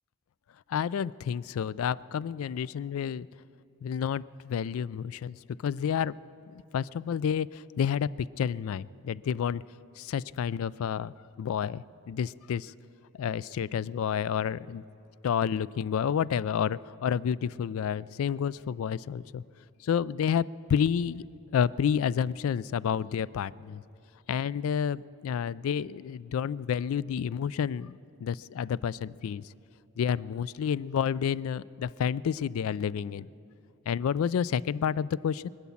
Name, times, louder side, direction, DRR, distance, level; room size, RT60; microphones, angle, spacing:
voice 1, 0.7-3.3 3.8-5.4 5.6-6.1 6.5-9.6 10.0-12.7 13.1-14.8 15.2-19.4 19.8-21.2 21.5-23.8 24.3-29.5 30.0-33.3 33.9-35.5, left 8 dB, 75° left, 21 dB, 0.3 m, -30 dB
23.5 x 8.4 x 7.1 m, 2.8 s
head